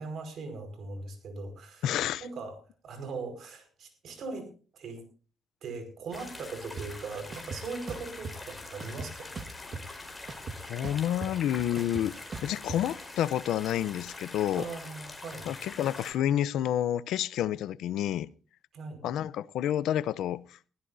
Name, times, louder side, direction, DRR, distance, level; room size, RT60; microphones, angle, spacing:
voice 1, 0.0-1.9 2.2-2.6 2.8-5.0 5.6-9.3 14.6-15.5 18.7-19.1, right 4 dB, 65° right, 5.2 m, -40 dB
voice 2, 1.8-2.3 10.7-12.2 12.4-14.6 15.5-18.3 19.0-20.6, left 11 dB, 85° left, 0.7 m, -29 dB
sound 1, 6.1-16.1, left 2 dB, 15° left, 4.6 m, -44 dB
sound 2, 6.8-6.9 7.3-8.3 8.8-10.0 10.3-12.8, right 4 dB, 45° right, 1.7 m, -39 dB
21.5 x 15.5 x 2.7 m
cardioid pair, 90°, 0 cm